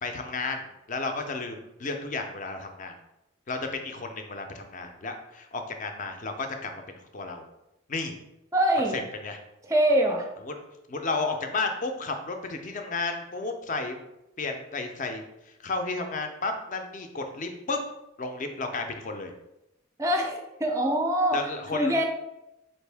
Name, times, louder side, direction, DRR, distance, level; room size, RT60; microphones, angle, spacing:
voice 1, 0.0-2.9 3.5-7.4 7.9-8.2 8.9-9.4 10.4-10.6 10.9-14.0 14.4-17.8 18.2-19.3 21.3-22.0, left 3 dB, 40° left, 5 dB, 0.5 m, -33 dB
voice 2, 8.5-9.0 9.6-10.3 20.0-21.4 21.7-22.0, right 1 dB, 15° right, 3 dB, 0.4 m, -24 dB
4.3 x 2.6 x 3.3 m, 0.88 s
head